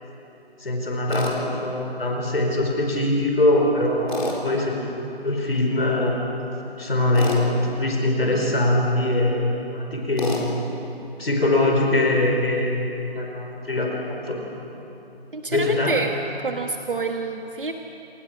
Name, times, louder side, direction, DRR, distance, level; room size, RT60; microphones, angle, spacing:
voice 1, 0.6-6.2 6.8-10.4 11.2-14.4 15.5-15.9, left 1 dB, 65° left, 1 dB, 4.6 m, -22 dB
Tools, 1.1-1.4 4.1-4.4 7.1-7.4 10.2-10.5, left 3 dB, 50° left, 4.1 m, -28 dB
voice 2, 15.3-16.1 16.4-17.7, right 3 dB, 55° right, 4 dB, 1.4 m, -27 dB
28.5 x 19.5 x 6.2 m, 2.9 s
figure-of-eight pair, 165°, 31 cm